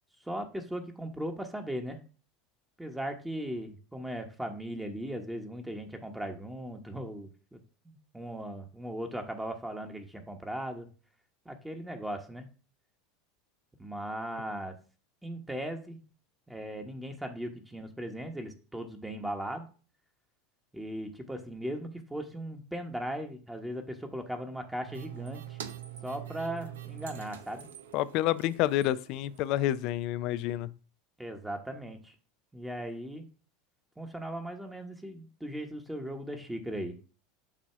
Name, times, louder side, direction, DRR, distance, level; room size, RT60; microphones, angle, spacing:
voice 1, 0.2-2.0 2.8-10.9 11.4-12.5 13.8-14.8 15.2-16.0 16.5-19.7 20.7-25.6 26.0-27.7 31.2-32.1 32.5-33.2 34.0-37.0, right 1 dB, 5° right, 1.1 m, -38 dB
sound 1, 24.9-29.8, right 11 dB, 85° right, 0.6 m, -45 dB
voice 2, 27.9-30.7, left 14 dB, 60° left, 0.4 m, -29 dB
7.4 x 2.8 x 5.7 m
hypercardioid pair, 95°, 0 cm